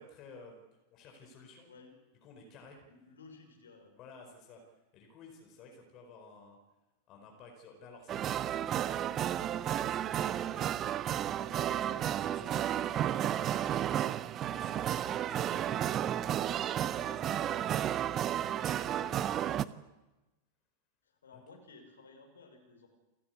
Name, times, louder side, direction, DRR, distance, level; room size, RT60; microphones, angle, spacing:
voice 1, 0.0-1.7 2.2-2.8 4.0-6.6 7.1-10.8 11.4-16.1 16.9-17.9 18.4-19.8, left 3 dB, 35° left, 3 dB, 4.6 m, -54 dB
voice 2, 2.9-3.9 5.7-5.8 21.0-22.9, left 4 dB, 70° left, 3 dB, 5.9 m, -56 dB
sound 1, 8.1-19.6, right 11 dB, 30° right, 0.7 m, -32 dB
29.5 x 13.5 x 8.4 m, 1.1 s
figure-of-eight pair, 90°, 0 cm